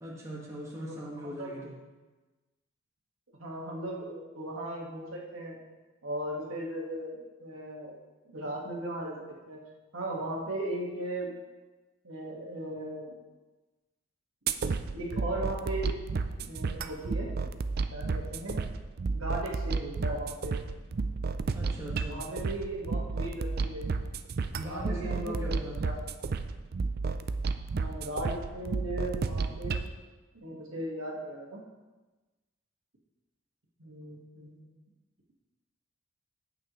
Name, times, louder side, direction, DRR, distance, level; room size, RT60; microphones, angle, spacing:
voice 1, 0.0-1.7 21.5-22.2 24.5-25.8, equal, 15° right, -5 dB, 1.6 m, -40 dB
voice 2, 1.2-1.5 3.4-5.6 6.0-8.0 8.2-9.1 9.5-9.6 9.9-11.3 12.0-13.2 14.9-15.9 16.4-17.3 17.9-18.7 19.1-20.6 22.0-23.9 24.6-26.0 26.3-26.4 27.8-29.8 30.3-31.6 33.8-34.7, right 1 dB, 75° right, -2 dB, 1.7 m, -37 dB
sound 1, 14.5-29.9, right 4 dB, 45° right, 0.4 m, -32 dB
16.0 x 5.9 x 3.1 m, 1.2 s
head